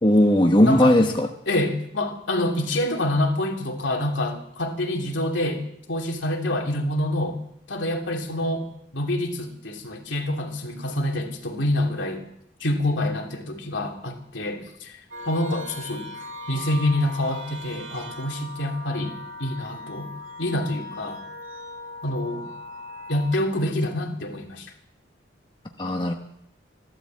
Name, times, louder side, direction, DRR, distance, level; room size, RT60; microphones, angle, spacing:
voice 1, 0.0-1.3 25.8-26.1, left 1 dB, 25° left, 3 dB, 1.0 m, -17 dB
voice 2, 0.6-0.9 1.5-7.4 7.7-12.2 12.6-15.0 15.3-16.1 16.5-19.1 19.4-20.1 20.4-21.2 22.0-22.5 23.1-24.7, left 1 dB, 75° left, 2 dB, 2.9 m, -26 dB
sound 1, 15.1-23.4, left 1 dB, 85° right, 2.7 m, -39 dB
15.5 x 12.0 x 7.5 m, 0.76 s
head